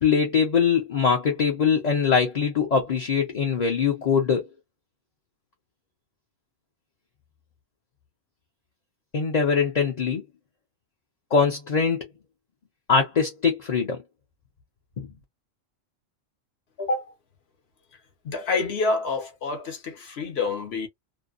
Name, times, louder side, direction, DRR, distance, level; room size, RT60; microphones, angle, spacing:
voice 1, 0.0-4.5 9.1-10.2 11.3-12.0 12.9-14.0 15.0-15.1, left 6 dB, 40° left, 0.7 m, -22 dB
voice 2, 18.2-20.9, left 3 dB, 60° left, 1.0 m, -27 dB
2.7 x 2.1 x 2.4 m
omnidirectional pair, 1.3 m